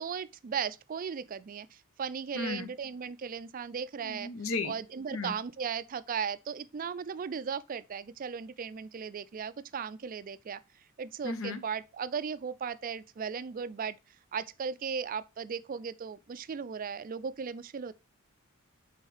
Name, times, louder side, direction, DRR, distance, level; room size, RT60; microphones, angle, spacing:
voice 1, 0.0-4.3 4.6-10.6 11.0-14.0 14.3-17.9, right 6 dB, 40° right, 0.4 m, -37 dB
voice 2, 2.4-2.7 4.0-4.7 5.1-5.3 11.2-11.6, left 3 dB, 65° left, 0.9 m, -34 dB
5.5 x 3.7 x 4.8 m
head